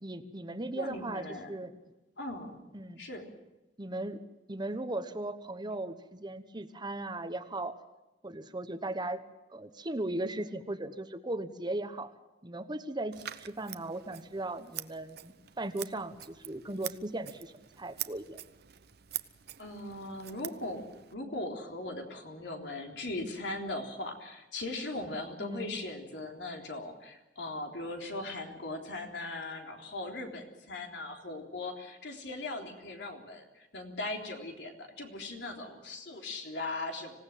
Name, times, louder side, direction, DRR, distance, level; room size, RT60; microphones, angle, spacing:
voice 1, 0.0-1.7 2.7-3.0 3.8-4.2 4.5-7.8 8.2-9.2 9.5-12.1 12.4-18.4 25.4-25.7, right 2 dB, 25° right, 10 dB, 1.1 m, -37 dB
voice 2, 0.7-1.6 2.2-2.6 3.0-3.2 19.6-20.9 21.1-37.1, left 2 dB, 75° left, 2 dB, 3.6 m, -39 dB
Scissors, 13.1-21.1, right 13 dB, 60° right, 0.9 m, -45 dB
26.0 x 17.0 x 7.5 m, 1.0 s
head